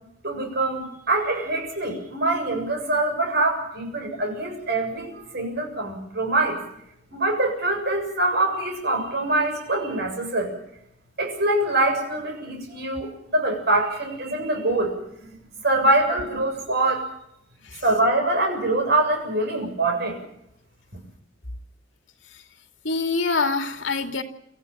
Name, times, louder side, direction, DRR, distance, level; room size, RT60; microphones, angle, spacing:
voice 1, 0.2-6.6 7.1-10.5 11.2-15.4 15.6-17.1 17.8-20.2, right 2 dB, 60° right, 3 dB, 7.3 m, -24 dB
voice 2, 22.8-24.2, left 4 dB, 75° left, 6 dB, 2.5 m, -25 dB
26.0 x 14.5 x 9.2 m, 0.76 s
head